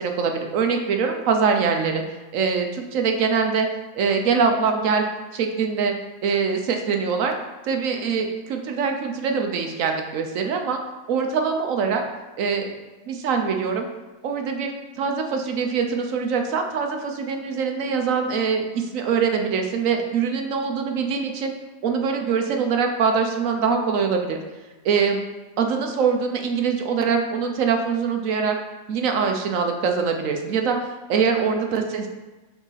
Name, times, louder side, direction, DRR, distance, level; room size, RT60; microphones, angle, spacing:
voice 1, 0.0-2.0 2.3-3.7 3.9-5.1 5.3-5.9 6.2-7.4 7.6-10.8 11.1-12.0 12.4-12.7 13.1-13.9 14.2-14.7 15.0-21.5 21.8-24.4 24.8-25.2 25.6-28.6 28.9-32.1, right 5 dB, 70° right, 4 dB, 1.1 m, -23 dB
6.0 x 4.0 x 4.0 m, 1.2 s
omnidirectional pair, 1.5 m